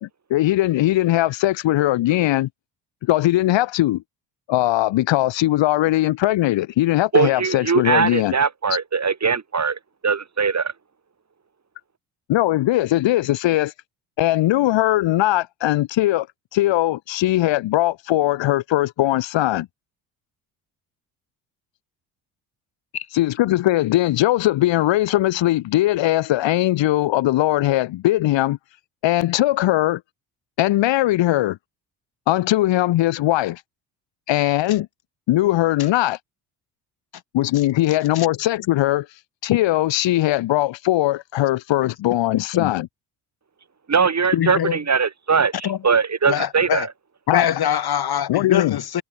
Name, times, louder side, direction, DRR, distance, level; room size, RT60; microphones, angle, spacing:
voice 1, 0.0-2.5 3.0-4.0 4.5-8.3 12.3-13.7 14.2-16.3 16.5-19.7 23.1-28.6 29.0-30.0 30.6-31.6 32.3-33.6 34.3-34.9 35.3-36.2 37.3-39.1 39.4-42.9 47.3-47.5 48.3-48.8, left 15 dB, 70° left, 3.5 m, -20 dB
voice 2, 7.1-10.7 43.9-46.9, right 5 dB, 35° right, 7.4 m, -21 dB
voice 3, 42.3-42.7 44.3-44.8 45.6-45.8 46.3-46.9 47.3-49.0, left 10 dB, 50° left, 3.0 m, -23 dB
supercardioid pair, 65°, 47 cm